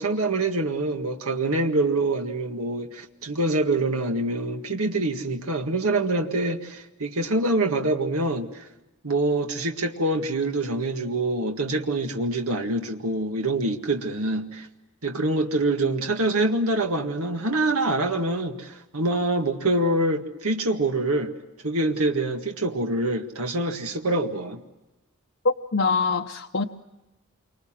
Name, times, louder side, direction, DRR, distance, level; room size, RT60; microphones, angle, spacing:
voice 1, 0.0-8.7 9.0-14.7 15.0-21.3 21.6-24.6, right 2 dB, 80° right, 1.9 m, -25 dB
voice 2, 25.4-26.6, left 4 dB, 55° left, 0.9 m, -24 dB
28.5 x 25.0 x 7.6 m
head